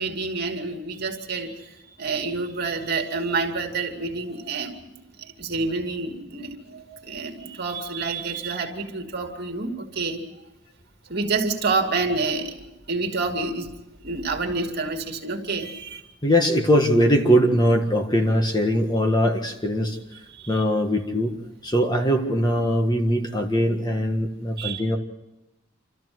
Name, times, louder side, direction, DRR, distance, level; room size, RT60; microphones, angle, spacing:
voice 1, 0.0-10.2 11.1-12.6 12.9-13.7 14.0-16.0 20.4-20.5 24.6-24.8, right 3 dB, 50° right, 3 dB, 2.6 m, -28 dB
voice 2, 16.2-20.0 20.5-25.0, equal, 20° left, 4 dB, 1.7 m, -21 dB
28.0 x 14.0 x 7.9 m, 1.0 s
head